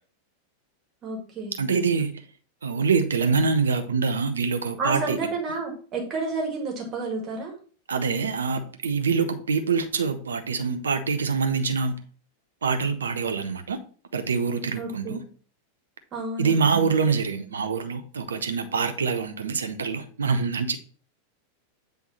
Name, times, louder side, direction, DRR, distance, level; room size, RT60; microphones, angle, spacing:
voice 1, 1.0-1.6 4.8-7.5 14.8-15.3 16.1-16.6, right 3 dB, 30° right, 2.0 m, -30 dB
voice 2, 1.6-2.2 2.6-5.2 7.9-12.0 12.6-13.8 14.1-15.2 16.4-20.8, right 5 dB, 70° right, 0.7 m, -25 dB
7.8 x 3.5 x 4.2 m
figure-of-eight pair, 90°, 0 cm